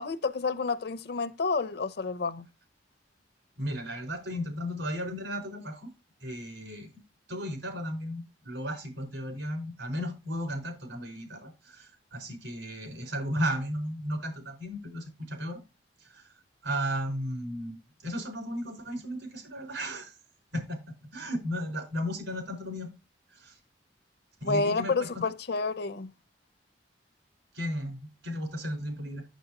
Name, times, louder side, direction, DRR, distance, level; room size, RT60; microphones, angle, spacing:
voice 1, 0.0-2.5 24.4-26.1, left 3 dB, 60° left, 0.7 m, -29 dB
voice 2, 3.6-5.9 6.2-6.9 7.3-15.6 16.0-16.3 16.6-20.2 20.5-22.9 23.3-23.6 24.4-25.2 27.5-29.2, equal, 85° right, 4.8 m, -35 dB
9.2 x 8.0 x 2.9 m
head